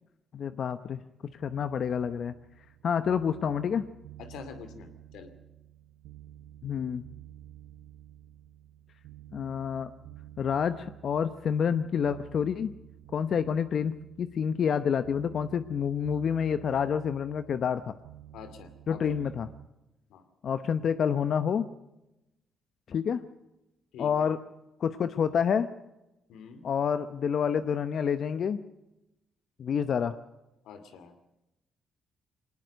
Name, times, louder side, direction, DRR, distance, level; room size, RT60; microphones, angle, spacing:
voice 1, 0.3-2.3 2.8-3.8 6.6-7.0 9.3-9.9 10.4-12.7 13.1-17.9 18.9-19.5 20.4-21.7 22.9-23.2 24.0-24.4 24.8-25.7 26.6-28.6 29.6-30.2, left 7 dB, 60° left, 11 dB, 0.8 m, -28 dB
sound 1, 1.4-19.7, right 12 dB, 90° right, 0.9 m, -51 dB
voice 2, 4.2-5.3 18.3-19.2 20.1-20.2 23.9-24.3 26.3-26.7 30.6-31.1, left 6 dB, 85° left, 9 dB, 2.4 m, -46 dB
21.0 x 19.5 x 6.4 m, 0.93 s
cardioid pair, 85°, 0 cm